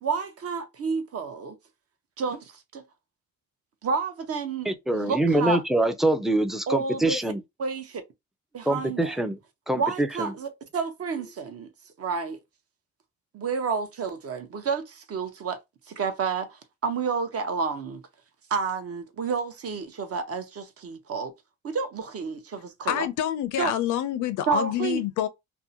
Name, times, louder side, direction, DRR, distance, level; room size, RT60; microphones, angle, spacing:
voice 1, 0.0-1.6 2.2-2.8 3.8-5.6 6.7-7.2 7.6-8.0 8.5-9.3 9.7-11.7 12.0-12.4 13.3-15.6 15.9-18.0 18.5-21.3 21.6-23.1 23.6-23.7 24.5-25.0, right 5 dB, 50° right, 0.7 m, -30 dB
voice 2, 4.7-7.4 8.7-9.4 9.7-10.3, right 1 dB, ahead, 0.4 m, -24 dB
voice 3, 22.9-25.3, left 11 dB, 80° left, 0.5 m, -27 dB
2.6 x 2.1 x 2.6 m
cardioid pair, 90°, 30 cm